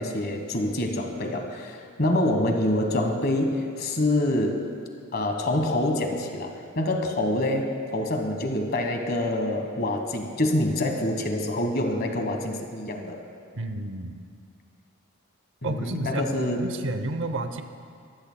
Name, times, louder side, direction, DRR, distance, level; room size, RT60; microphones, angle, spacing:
voice 1, 0.0-4.6 5.1-13.2 15.6-16.6, left 1 dB, 45° left, 4 dB, 1.4 m, -26 dB
voice 2, 13.5-14.2 15.6-17.6, right 2 dB, 55° right, 8 dB, 0.7 m, -31 dB
23.0 x 15.5 x 2.3 m, 2.2 s
head